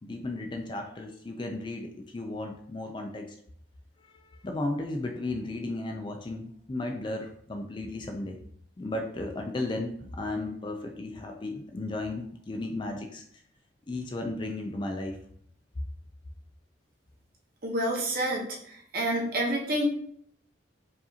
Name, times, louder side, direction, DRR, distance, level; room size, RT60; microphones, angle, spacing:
voice 1, 0.0-3.4 4.0-8.4 8.8-13.2 13.9-15.2, left 2 dB, 25° left, 3 dB, 0.3 m, -35 dB
voice 2, 17.6-19.8, right 1 dB, 50° right, -1 dB, 0.9 m, -29 dB
4.8 x 2.5 x 2.8 m, 0.64 s
head